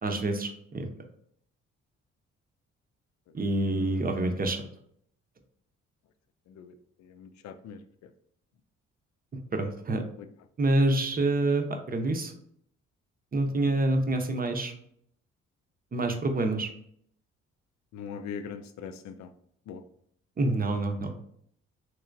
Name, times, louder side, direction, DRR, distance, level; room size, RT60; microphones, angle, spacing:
voice 1, 0.0-0.9 3.3-4.6 9.5-10.0 10.6-12.3 13.3-14.7 15.9-16.7 20.4-21.2, right 2 dB, 30° right, 5 dB, 0.7 m, -27 dB
voice 2, 7.2-7.8 17.9-19.3 19.7-19.8, left 6 dB, 65° left, 9 dB, 0.5 m, -40 dB
3.3 x 2.9 x 2.5 m, 0.67 s
supercardioid pair, 55°, 31 cm